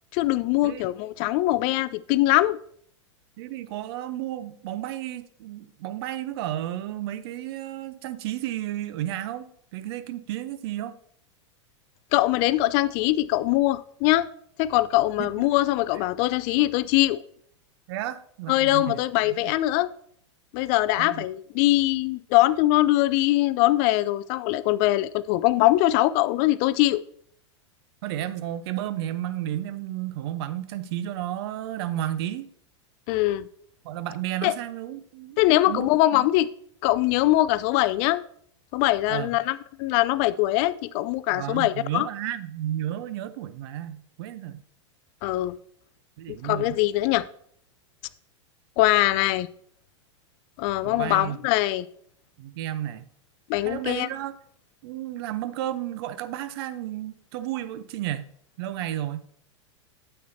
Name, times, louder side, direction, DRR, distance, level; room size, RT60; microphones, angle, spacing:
voice 1, 0.1-2.6 12.1-14.3 14.6-17.2 18.5-19.9 20.5-27.0 33.1-33.5 34.4-34.5 35.4-36.5 36.8-38.2 38.7-42.1 45.2-45.6 46.3-47.3 48.8-49.5 50.6-51.9 53.5-54.1, left 16 dB, 40° left, 0.4 m, -22 dB
voice 2, 0.6-0.9 3.4-10.9 15.2-15.3 15.9-16.0 17.9-19.4 21.0-21.3 28.0-32.5 33.8-36.3 39.1-39.3 41.3-44.7 46.2-46.8 50.8-51.4 52.4-53.1 53.6-54.4 54.8-58.3 58.6-59.2, right 12 dB, 55° right, 0.6 m, -32 dB
9.2 x 7.8 x 2.7 m
hypercardioid pair, 95°, 16 cm